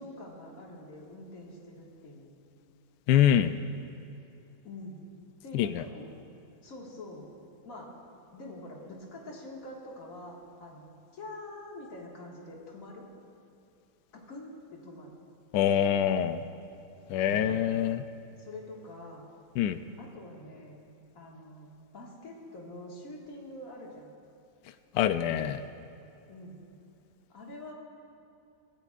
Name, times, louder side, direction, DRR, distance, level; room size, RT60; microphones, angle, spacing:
voice 1, 0.0-2.3 4.6-5.0 5.4-6.1 6.6-7.3 7.6-7.9 8.3-13.1 14.1-15.2 18.4-19.3 20.0-20.8 21.1-21.7 21.9-24.1 26.3-26.6 27.3-27.7, left 1 dB, 55° left, -3 dB, 2.3 m, -45 dB
voice 2, 3.1-3.6 5.5-5.8 15.5-16.4 17.1-18.0 19.6-19.8 24.9-25.6, left 10 dB, 85° left, 10 dB, 1.2 m, -25 dB
24.0 x 15.0 x 2.5 m, 2.7 s
omnidirectional pair, 1.7 m